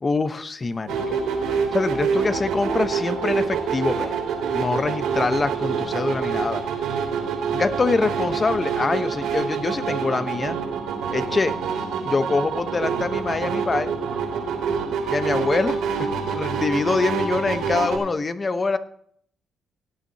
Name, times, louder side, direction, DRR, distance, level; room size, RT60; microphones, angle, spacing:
voice 1, 0.0-1.2 1.7-4.1 4.5-6.6 7.5-10.6 11.1-11.5 12.0-13.9 15.1-18.8, left 3 dB, 30° left, 11 dB, 1.0 m, -24 dB
sound 1, 0.9-18.0, right 6 dB, 90° right, 3.1 m, -26 dB
18.0 x 9.2 x 2.8 m, 0.63 s
cardioid pair, 90°, 0 cm